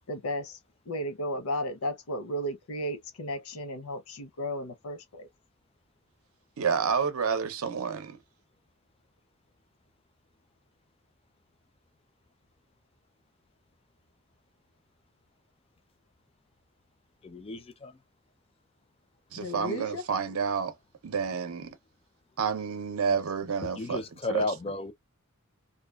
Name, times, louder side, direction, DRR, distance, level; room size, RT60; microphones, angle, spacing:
voice 1, 0.1-0.6 0.9-5.3 19.4-20.0, equal, 85° left, 0.7 m, -34 dB
voice 2, 6.6-8.2 19.3-20.7 21.0-21.8 22.4-24.0 24.3-24.5, right 6 dB, 75° right, 0.6 m, -29 dB
voice 3, 17.2-18.0 23.8-24.9, left 3 dB, 25° left, 0.4 m, -33 dB
2.7 x 2.2 x 2.2 m
head